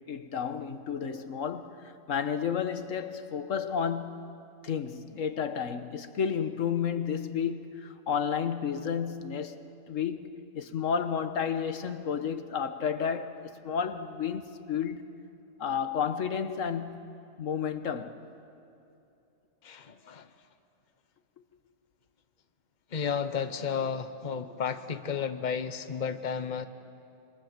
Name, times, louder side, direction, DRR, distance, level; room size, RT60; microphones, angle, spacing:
voice 1, 0.1-4.3 4.6-9.6 9.9-15.1 15.6-17.1 17.4-18.2, left 7 dB, 90° left, 1.5 m, -32 dB
voice 2, 19.6-20.3 22.9-26.7, left 6 dB, 40° left, 1.1 m, -32 dB
26.5 x 25.0 x 7.5 m
omnidirectional pair, 1.3 m